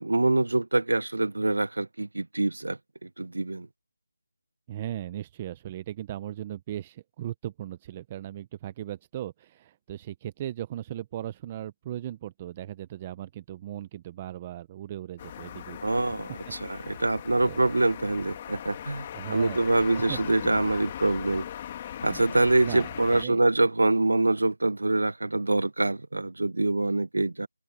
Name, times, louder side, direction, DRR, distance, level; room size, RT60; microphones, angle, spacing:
voice 1, 0.0-2.8 3.2-3.7 15.8-16.3 16.6-19.1 19.3-21.4 22.0-27.5, right 2 dB, 90° right, 0.7 m, -25 dB
voice 2, 4.7-16.2 16.6-17.1 17.4-17.6 19.1-20.2 22.1-23.4, right 12 dB, 15° right, 0.4 m, -38 dB
sound 1, 15.2-23.2, left 10 dB, 15° left, 1.5 m, -39 dB
open air
figure-of-eight pair, 180°, 0 cm